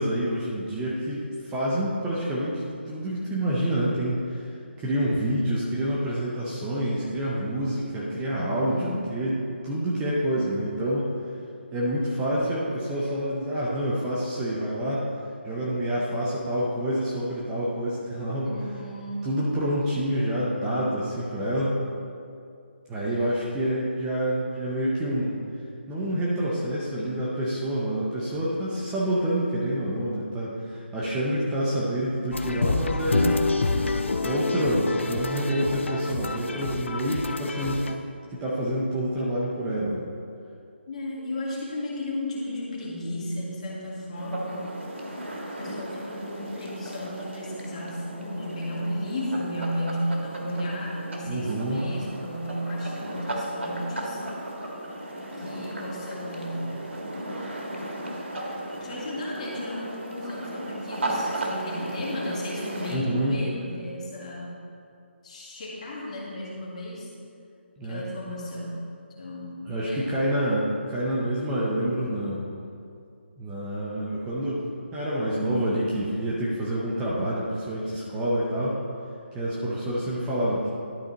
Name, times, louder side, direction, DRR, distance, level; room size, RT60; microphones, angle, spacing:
voice 1, 0.0-4.5 4.8-11.1 11.7-15.0 15.4-18.5 19.2-21.8 22.9-25.4 25.9-33.7 34.1-37.9 38.3-40.0 51.3-51.9 62.9-63.4 67.8-68.0 69.6-72.4 73.4-78.8 79.3-80.7, right 1 dB, 10° right, -6 dB, 0.7 m, -27 dB
voice 2, 8.4-9.1 18.4-19.3 23.0-23.5 33.7-34.3 40.9-44.8 45.6-54.2 55.4-56.8 58.7-64.6 65.2-67.1 67.8-68.8 69.2-70.2, equal, 35° left, -4 dB, 1.8 m, -34 dB
sound 1, 32.3-38.0, left 3 dB, 80° left, 0.6 m, -28 dB
sound 2, 44.1-63.0, right 1 dB, 85° right, 1.6 m, -35 dB
11.5 x 4.2 x 4.0 m, 2.4 s
figure-of-eight pair, 165°, 6 cm